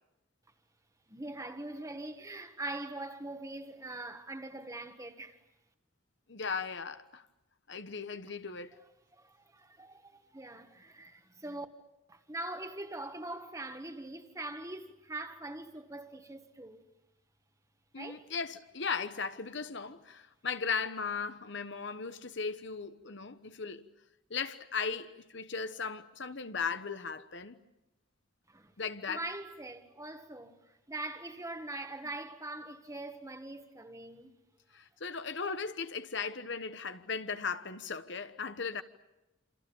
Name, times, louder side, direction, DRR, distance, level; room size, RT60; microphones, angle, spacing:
voice 1, 1.1-5.4 9.1-11.6 12.1-16.9 18.0-18.3 28.5-28.7 29.1-30.6 30.9-34.4, right 2 dB, 15° right, 1.7 m, -42 dB
voice 2, 6.3-7.2 7.7-8.7 17.9-23.8 24.3-27.6 28.8-29.2 34.7-38.8, left 5 dB, 65° left, 1.2 m, -37 dB
27.5 x 27.5 x 7.2 m
head